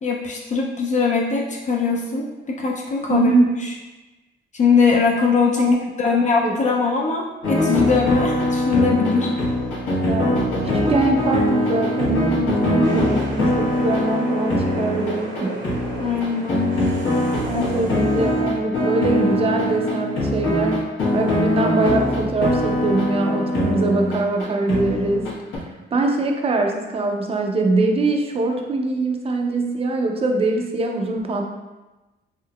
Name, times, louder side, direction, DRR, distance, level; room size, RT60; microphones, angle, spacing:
voice 1, 0.0-3.3 3.6-3.7 4.5-9.3 16.0-16.9 17.5-17.6, left 5 dB, 40° left, 0 dB, 0.4 m, -21 dB
voice 2, 3.1-3.5 5.6-5.8 6.0-6.2 6.4-6.5 10.0-15.6 17.4-20.8 21.1-25.3 25.6-25.7 25.9-31.5, right 2 dB, 30° right, 2 dB, 0.4 m, -22 dB
sound 1, 7.4-25.6, left 1 dB, 75° left, 1.0 m, -22 dB
sound 2, 12.8-18.4, right 2 dB, 70° right, 0.8 m, -34 dB
3.6 x 2.7 x 2.2 m, 1.1 s
cardioid pair, 90°, 20 cm